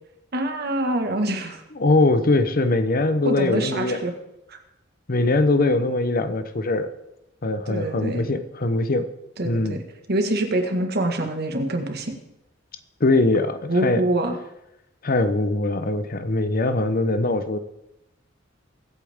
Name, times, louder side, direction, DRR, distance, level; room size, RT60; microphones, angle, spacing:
voice 1, 0.3-1.6 3.2-4.1 4.5-4.6 7.7-8.2 9.4-9.8 10.1-12.2 13.7-14.3, right 1 dB, 55° right, 5 dB, 1.7 m, -25 dB
voice 2, 1.8-4.0 5.1-6.9 7.4-9.1 9.4-9.8 13.0-14.0 15.0-17.6, left 2 dB, 45° left, 10 dB, 0.8 m, -21 dB
22.5 x 8.4 x 3.6 m, 0.85 s
head